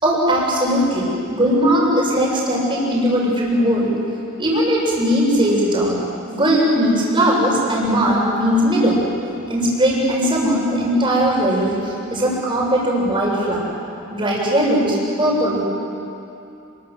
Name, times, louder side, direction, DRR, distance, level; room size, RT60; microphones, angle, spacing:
voice 1, 0.0-3.9 4.4-6.0 6.3-9.0 9.5-13.6 14.1-15.6, equal, 25° right, -3 dB, 6.8 m, -19 dB
29.5 x 22.0 x 7.8 m, 2.8 s
head